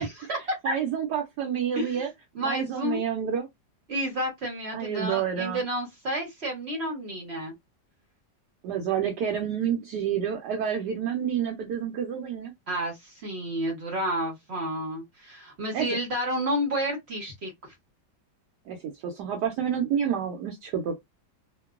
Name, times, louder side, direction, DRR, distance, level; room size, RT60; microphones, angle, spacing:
voice 1, 0.0-0.7 1.7-2.0 2.3-3.0 3.9-7.5 12.7-17.5, equal, 50° right, 0.8 m, -30 dB
voice 2, 0.6-2.1 2.4-3.5 4.7-5.6 8.6-12.5 15.7-15.9 18.7-21.0, right 8 dB, 75° right, 1.1 m, -29 dB
2.9 x 2.1 x 2.3 m
omnidirectional pair, 1.9 m